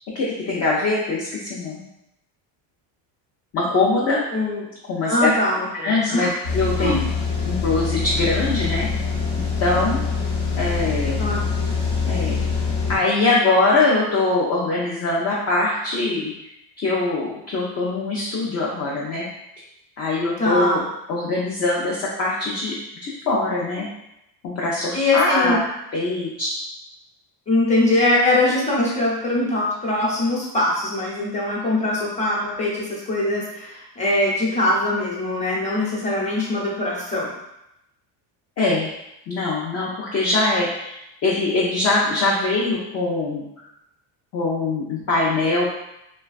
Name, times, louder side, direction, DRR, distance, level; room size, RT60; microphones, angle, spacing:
voice 1, 0.1-1.8 3.5-4.2 4.8-5.3 5.8-7.0 7.4-8.9 9.4-10.0 10.6-11.2 12.1-12.4 12.9-16.3 16.8-19.3 20.0-20.8 21.1-23.9 24.4-25.6 25.9-26.5 38.6-38.9 39.3-41.0 41.2-43.4 44.3-45.7, left 2 dB, 35° left, -4 dB, 0.4 m, -22 dB
voice 2, 5.0-6.3 6.8-7.0 11.2-11.6 20.4-20.8 24.9-25.6 27.5-37.3, left 2 dB, 15° left, -6 dB, 0.9 m, -22 dB
sound 1, 6.4-13.0, left 5 dB, 55° left, 0.9 m, -24 dB
3.1 x 2.2 x 2.4 m, 0.85 s
cardioid pair, 115°, 50 cm